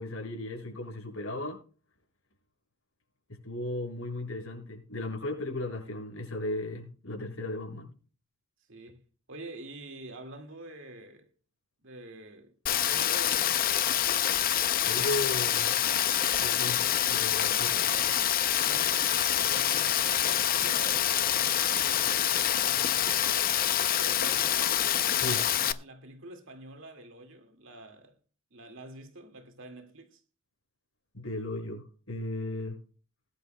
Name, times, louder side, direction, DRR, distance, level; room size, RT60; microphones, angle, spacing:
voice 1, 0.0-1.6 3.3-7.9 14.8-15.8 16.4-17.8 25.1-25.4 31.1-32.8, left 1 dB, 75° left, 6.8 m, -36 dB
voice 2, 8.7-9.0 9.3-11.3 11.8-13.6 17.6-18.2 18.5-23.5 23.9-24.6 25.2-28.2 28.5-30.2, right 1 dB, 65° right, 2.1 m, -47 dB
Rain, 12.7-25.7, left 10 dB, 45° left, 0.6 m, -26 dB
20.5 x 11.0 x 2.2 m
head